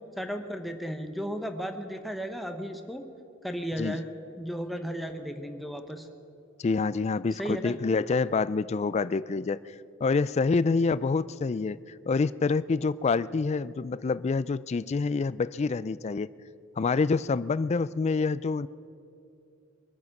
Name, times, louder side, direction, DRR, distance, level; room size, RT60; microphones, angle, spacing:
voice 1, 0.2-3.0 3.4-4.1 4.4-6.1 7.4-7.8, equal, ahead, 5 dB, 1.0 m, -34 dB
voice 2, 6.6-9.6 10.0-11.8 12.1-16.3 16.8-18.7, left 4 dB, 30° left, 17 dB, 0.3 m, -27 dB
23.0 x 9.5 x 6.0 m, 2.8 s
head